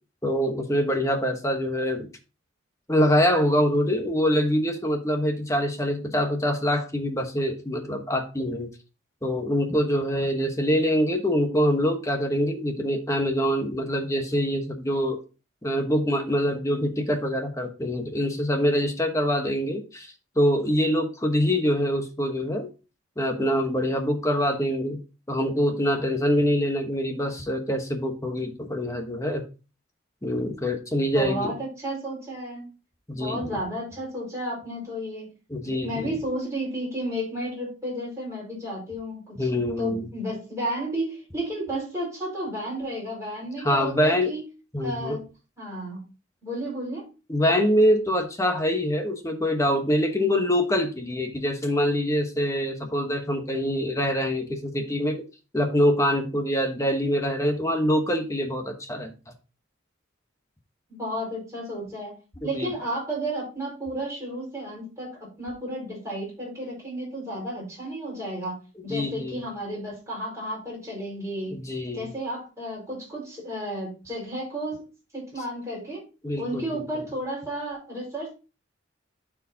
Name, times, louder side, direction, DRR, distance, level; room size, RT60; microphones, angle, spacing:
voice 1, 0.2-2.1 2.9-8.7 9.2-15.2 15.6-20.1 20.4-22.7 23.2-25.0 25.3-29.4 30.2-31.5 33.1-33.6 35.5-36.2 39.4-40.0 43.6-44.3 44.7-45.2 47.3-55.2 55.5-59.1 62.5-62.7 68.9-69.4 71.5-72.1 76.2-76.8, equal, 15° left, 4 dB, 1.1 m, -24 dB
voice 2, 31.1-32.7 33.2-35.3 35.6-44.4 44.8-45.2 45.6-46.0 46.4-47.1 60.9-62.1 62.4-68.5 68.8-71.6 71.9-74.8 75.1-76.0 76.4-78.3, right 1 dB, 15° right, -5 dB, 5.0 m, -32 dB
12.0 x 4.7 x 2.8 m, 0.32 s
head